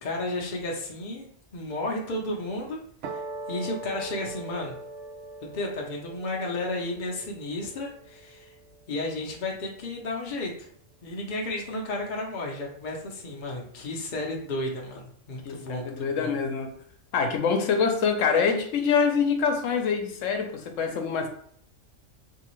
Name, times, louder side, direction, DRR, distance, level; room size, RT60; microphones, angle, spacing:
voice 1, 0.0-4.8 5.4-8.5 8.9-10.7 11.0-16.3, left 2 dB, 50° left, -1 dB, 0.7 m, -33 dB
sound 1, 3.0-9.5, right 2 dB, 75° right, 0.9 m, -41 dB
voice 2, 15.4-16.7 17.1-21.3, left 6 dB, 85° left, 5 dB, 1.0 m, -25 dB
3.4 x 2.7 x 3.0 m, 0.62 s
omnidirectional pair, 1.3 m